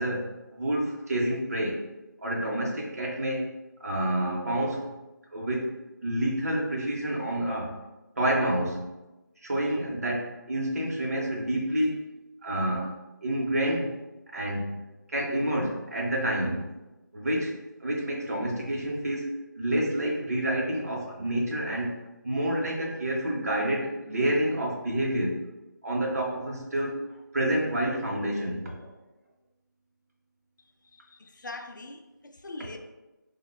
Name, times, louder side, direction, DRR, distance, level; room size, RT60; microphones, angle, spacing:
voice 1, 0.0-1.8 2.2-3.5 3.8-4.9 5.3-5.7 6.0-7.8 8.2-8.9 9.4-12.1 12.4-12.9 13.2-14.0 14.3-14.8 15.1-16.7 17.1-17.6 17.8-22.0 22.2-25.4 25.8-27.0 27.3-28.9, right 1 dB, 50° right, -1 dB, 0.7 m, -28 dB
voice 2, 30.6-32.8, left 2 dB, 70° left, 6 dB, 0.4 m, -43 dB
3.2 x 2.1 x 3.2 m, 1.0 s
figure-of-eight pair, 165°, 11 cm